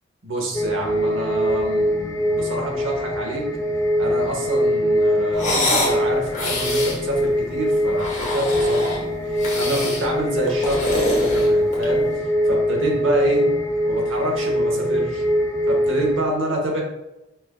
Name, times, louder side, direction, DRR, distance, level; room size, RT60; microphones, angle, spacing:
voice 1, 0.2-3.4 4.0-13.5 13.9-15.2 15.7-16.8, right 1 dB, 75° right, 0 dB, 0.9 m, -27 dB
sound 1, 0.5-16.2, equal, 15° left, 0.3 m, -22 dB
sound 2, 5.3-6.0 6.3-7.0 7.9-9.0 9.4-10.1 10.5-12.0, left 1 dB, 35° left, 0.8 m, -25 dB
5.6 x 2.4 x 2.3 m, 0.94 s
head